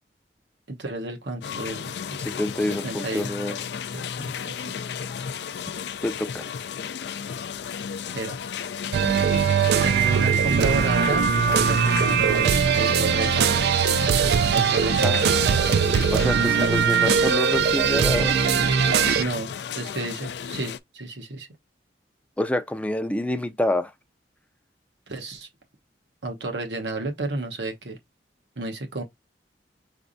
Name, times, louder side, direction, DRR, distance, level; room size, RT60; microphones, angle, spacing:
voice 1, 0.7-2.0 2.8-3.3 3.9-4.7 8.1-8.4 9.8-13.6 14.5-15.3 19.2-21.5 25.1-25.5 26.2-28.0 28.6-29.0, right 3 dB, 80° right, 1.0 m, -31 dB
sound 1, 1.4-20.8, left 7 dB, 70° left, 0.4 m, -34 dB
voice 2, 2.2-3.6 6.0-6.5 15.0-15.2 16.1-18.3 22.4-23.9, left 1 dB, 10° left, 0.4 m, -27 dB
sound 2, 8.9-19.2, right 7 dB, 65° right, 0.4 m, -21 dB
5.1 x 3.4 x 2.6 m
head